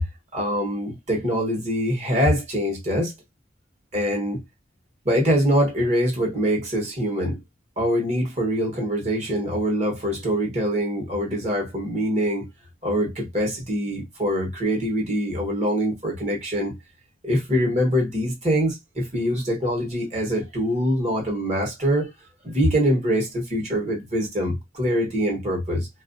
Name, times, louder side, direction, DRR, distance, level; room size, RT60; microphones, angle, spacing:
voice 1, 0.3-3.1 3.9-4.4 5.0-7.4 7.8-12.5 12.8-16.8 17.2-22.1 22.4-25.9, equal, 40° right, 1.0 m, -24 dB
2.9 x 2.4 x 2.5 m
head